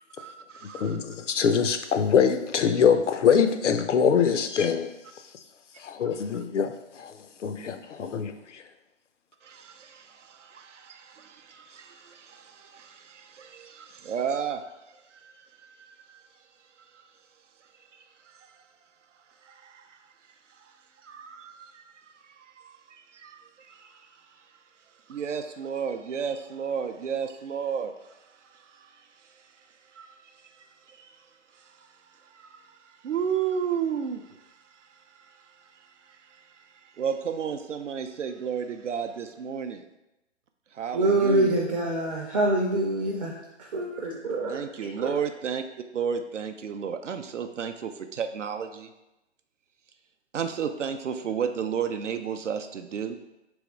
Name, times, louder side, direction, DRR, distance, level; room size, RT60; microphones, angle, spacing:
voice 1, 0.0-1.0 4.2-4.3 9.4-16.2 16.8-16.9 17.9-18.6 19.4-20.1 20.5-24.6 25.1-29.7 29.9-31.3 31.5-39.8 40.7-41.6 44.5-45.6 45.9-48.9 50.3-53.2, right 7 dB, 85° right, 7 dB, 0.5 m, -34 dB
voice 2, 0.8-4.9 5.8-7.1 7.4-8.6, left 7 dB, 80° left, 8 dB, 0.6 m, -24 dB
voice 3, 40.9-44.6 45.0-45.1, right 2 dB, 30° right, -2 dB, 0.5 m, -25 dB
3.5 x 3.1 x 4.8 m, 0.95 s
figure-of-eight pair, 135°, 36 cm